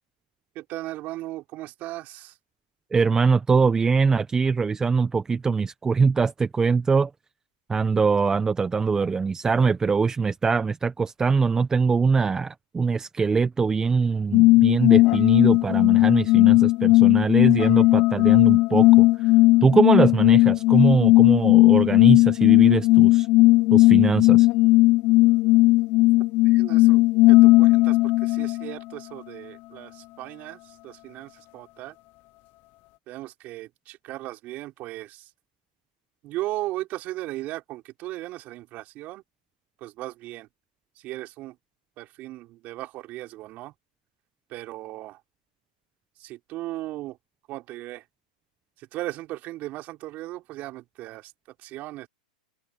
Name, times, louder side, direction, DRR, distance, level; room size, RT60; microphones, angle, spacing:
voice 1, 0.5-2.3 26.4-31.9 33.1-35.3 36.2-39.2 39.8-40.5 41.0-41.6 42.0-43.7 44.5-45.2 46.2-47.2 47.5-48.0 48.8-51.3 51.6-52.1, right 17 dB, 40° right, 4.5 m, -37 dB
voice 2, 2.9-7.1 7.7-19.3 19.6-23.3 23.7-24.5, right 5 dB, 15° right, 0.9 m, -22 dB
sound 1, 14.3-28.7, left 20 dB, 40° left, 0.6 m, -16 dB
hypercardioid pair, 125°, 4 cm